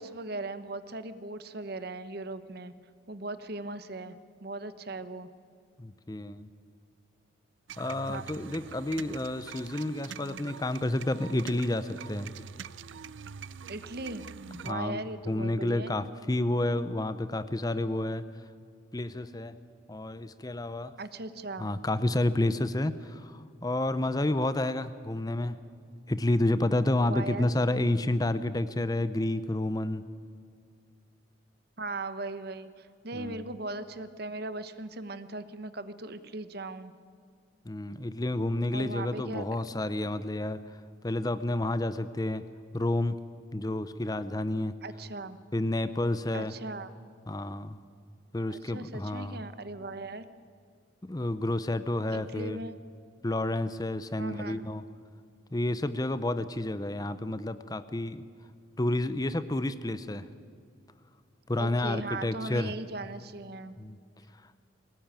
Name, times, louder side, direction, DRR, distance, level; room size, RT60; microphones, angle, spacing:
voice 1, 0.0-2.7 3.1-4.2 4.4-5.3 8.1-8.5 13.7-14.2 14.6-16.0 21.0-21.7 27.0-27.5 31.8-36.9 38.7-39.4 44.8-45.4 46.3-46.9 48.5-50.3 52.1-52.8 54.2-54.7 61.6-63.7, right 2 dB, 50° right, 12 dB, 1.0 m, -38 dB
voice 2, 5.8-6.5 7.8-12.3 14.5-18.2 18.9-19.6 19.9-20.9 21.6-25.6 26.1-30.0 33.1-33.4 37.6-40.6 41.0-42.4 42.7-43.1 43.5-44.7 45.5-46.5 47.3-47.8 48.3-49.4 51.0-52.6 53.2-54.8 55.5-58.2 58.8-60.3 61.5-62.7 63.8-64.0, left 1 dB, 20° left, 13 dB, 0.6 m, -30 dB
sound 1, 7.7-14.7, right 7 dB, 70° right, 0.5 m, -44 dB
22.0 x 18.5 x 9.0 m, 2.3 s
head